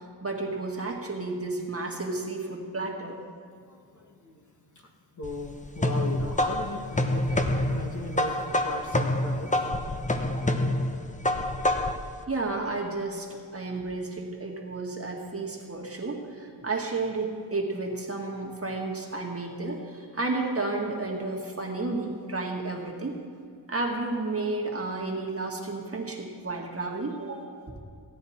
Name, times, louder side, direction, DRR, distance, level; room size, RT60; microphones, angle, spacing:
voice 1, 0.2-3.2 12.3-23.2 23.7-27.8, right 3 dB, 35° right, 0 dB, 1.8 m, -32 dB
voice 2, 3.6-4.4 4.7-9.5 9.9-10.1, left 1 dB, 45° left, 2 dB, 1.4 m, -38 dB
sound 1, 5.2-12.1, left 1 dB, 20° left, 0.8 m, -27 dB
16.0 x 9.4 x 4.3 m, 2.2 s
cardioid pair, 70°, 41 cm